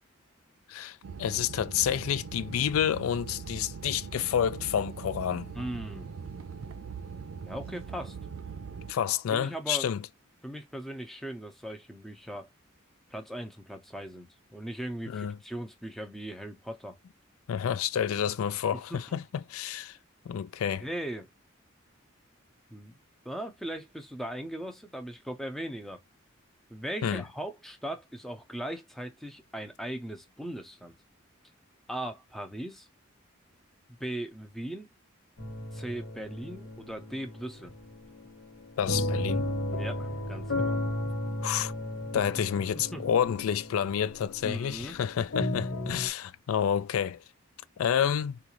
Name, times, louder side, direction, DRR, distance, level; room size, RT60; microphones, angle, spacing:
voice 1, 0.7-5.5 8.9-10.1 15.1-15.4 17.5-20.0 20.3-20.9 27.0-27.2 38.8-39.5 41.4-41.7 42.1-47.2 47.8-48.4, left 9 dB, 90° left, 0.3 m, -29 dB
sound 1, 1.0-8.9, right 6 dB, 90° right, 0.5 m, -41 dB
voice 2, 5.5-6.1 7.4-8.2 9.3-9.9 10.4-12.5 13.1-17.0 18.9-19.2 20.8-21.3 22.7-23.0 23.2-26.0 26.7-31.0 31.9-32.9 33.9-34.9 35.7-37.7 39.7-40.8 42.1-42.2 42.7-43.0 44.4-45.0, right 1 dB, ahead, 0.6 m, -38 dB
sound 2, 35.4-46.1, left 1 dB, 60° left, 1.4 m, -34 dB
3.7 x 2.4 x 3.0 m
head